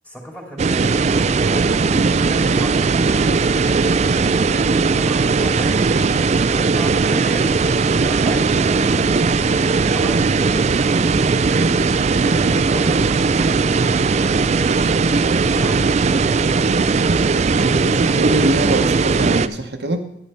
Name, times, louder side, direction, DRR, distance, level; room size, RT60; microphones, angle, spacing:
voice 1, 0.0-3.7 4.1-6.1 6.4-7.6 7.9-9.2 9.9-11.9 12.2-14.9, equal, 10° left, 0 dB, 2.5 m, -36 dB
sound 1, 0.6-19.5, right 4 dB, 35° right, 0.4 m, -18 dB
voice 2, 17.6-20.2, right 1 dB, 60° right, 4 dB, 0.9 m, -22 dB
11.0 x 10.0 x 4.2 m, 0.82 s
head